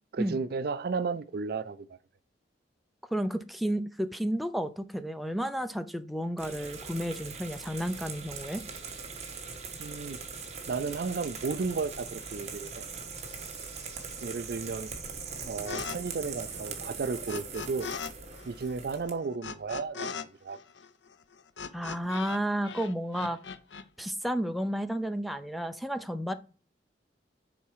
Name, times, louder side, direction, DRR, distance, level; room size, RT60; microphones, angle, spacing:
voice 1, 0.1-2.0 9.8-10.2 10.7-12.9 14.2-14.9 15.4-17.9 18.4-20.6, right 4 dB, 60° right, 0.4 m, -33 dB
voice 2, 3.1-8.6 21.7-23.4 24.0-26.3, equal, ahead, 0.6 m, -32 dB
sound 1, 6.4-19.1, right 5 dB, 40° right, 1.5 m, -41 dB
sound 2, 15.7-16.0 16.2-18.1 18.4-22.4 22.6-23.8, left 6 dB, 80° left, 0.6 m, -39 dB
7.2 x 4.7 x 4.8 m
head